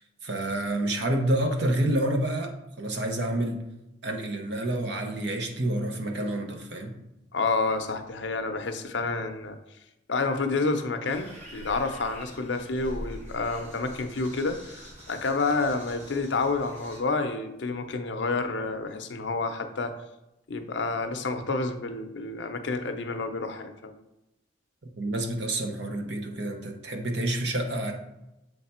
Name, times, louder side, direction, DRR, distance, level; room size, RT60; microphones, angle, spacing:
voice 1, 0.2-3.6 4.0-6.9 24.8-27.9, right 1 dB, 60° right, 4 dB, 0.8 m, -28 dB
voice 2, 7.3-9.6 10.1-19.9 20.5-23.9, left 3 dB, 65° left, 7 dB, 0.6 m, -29 dB
sound 1, 11.1-17.0, equal, 35° right, 1.3 m, -44 dB
7.2 x 3.3 x 4.3 m, 0.92 s
head